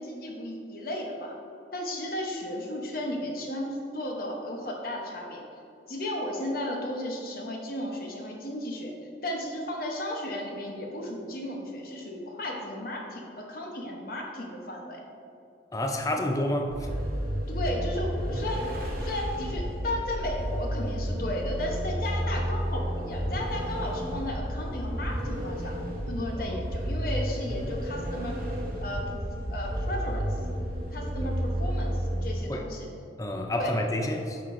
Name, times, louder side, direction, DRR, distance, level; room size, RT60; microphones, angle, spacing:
voice 1, 0.0-1.3 1.7-5.4 5.9-8.9 9.2-15.0 17.5-18.7 19.0-25.8 26.1-28.4 28.8-29.2 29.5-30.3 30.9-32.9 33.6-33.8, left 1 dB, 50° left, 0 dB, 0.8 m, -34 dB
voice 2, 15.7-17.0 26.5-26.6 32.5-32.7 33.2-34.4, left 1 dB, 20° left, 4 dB, 0.4 m, -29 dB
Vehicle, 16.7-32.6, equal, 50° right, 1.0 m, -31 dB
8.5 x 5.9 x 2.6 m, 2.6 s
head